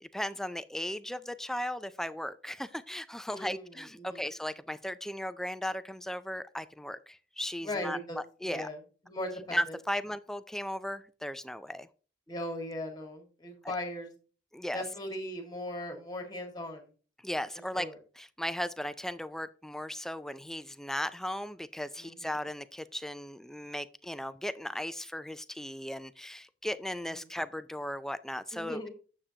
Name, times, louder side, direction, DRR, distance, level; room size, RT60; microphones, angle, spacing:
voice 1, 0.0-8.0 8.4-8.7 9.5-11.9 13.6-13.7 14.5-14.8 17.2-17.9 18.2-28.9, equal, 5° left, 13 dB, 0.3 m, -36 dB
voice 2, 3.3-4.3 7.6-8.8 9.0-9.6 12.3-14.1 14.7-16.9 17.7-18.0 22.0-22.3 27.0-27.3 28.5-28.9, left 1 dB, 25° left, 3 dB, 1.8 m, -39 dB
8.8 x 7.3 x 2.8 m, 0.37 s
head